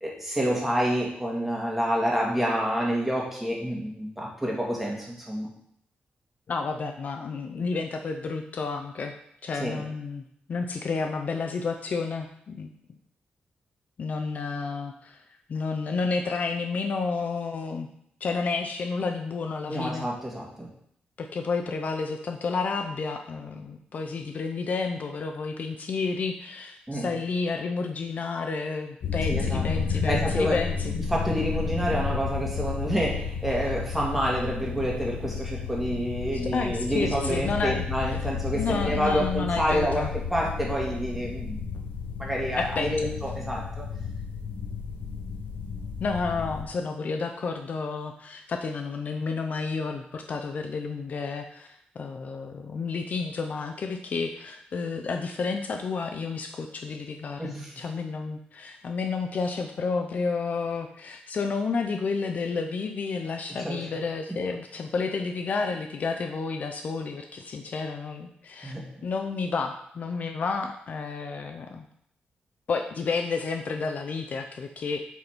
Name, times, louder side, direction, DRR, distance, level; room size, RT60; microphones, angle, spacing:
voice 1, 0.0-5.5 9.6-9.8 19.7-20.7 26.9-27.1 29.2-29.6 30.0-30.6 31.1-41.6 42.2-43.8 57.4-57.7 63.6-63.8 68.6-68.8, equal, 5° right, -3 dB, 1.9 m, -28 dB
voice 2, 6.5-9.1 9.4-10.2 10.5-12.7 14.0-15.2 15.5-17.9 18.2-20.1 21.2-30.9 36.5-37.8 38.1-38.2 38.5-40.1 42.6-43.1 46.0-51.7 52.0-68.7 69.0-71.8 72.7-75.0, left 4 dB, 50° left, 5 dB, 0.6 m, -31 dB
sound 1, 29.0-46.6, left 5 dB, 80° left, 1.0 m, -32 dB
8.2 x 4.1 x 4.5 m, 0.69 s
wide cardioid pair, 145°, 3 cm